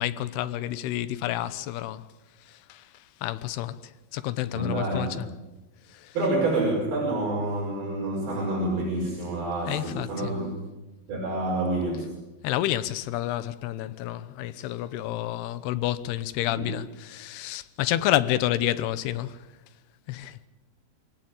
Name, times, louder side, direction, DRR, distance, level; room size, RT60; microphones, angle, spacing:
voice 1, 0.0-2.0 2.5-2.8 3.2-5.3 5.9-6.1 9.7-10.3 12.4-19.4 20.1-20.4, left 13 dB, 85° left, 3.0 m, -29 dB
voice 2, 4.5-5.3 6.1-10.6 11.1-12.1 16.4-16.6, right 2 dB, 70° right, 7.4 m, -28 dB
26.0 x 18.0 x 8.8 m
omnidirectional pair, 4.6 m